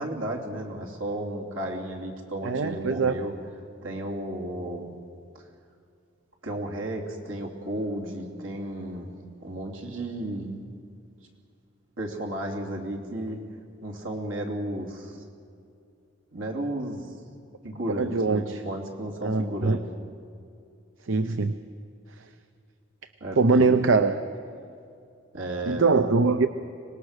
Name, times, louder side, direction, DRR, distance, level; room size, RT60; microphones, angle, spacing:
voice 1, 0.0-3.3 3.8-4.9 5.3-5.4 6.4-9.1 9.4-10.7 12.0-13.4 13.8-15.2 16.3-17.1 17.6-19.8 23.2-23.9 25.3-25.9, right 1 dB, 90° right, 0 dB, 2.9 m, -33 dB
voice 2, 2.4-3.2 17.9-18.6 19.2-19.8 21.1-21.6 23.4-24.2 25.6-26.5, right 4 dB, 75° right, 10 dB, 0.7 m, -22 dB
25.0 x 19.5 x 6.6 m, 2.4 s
head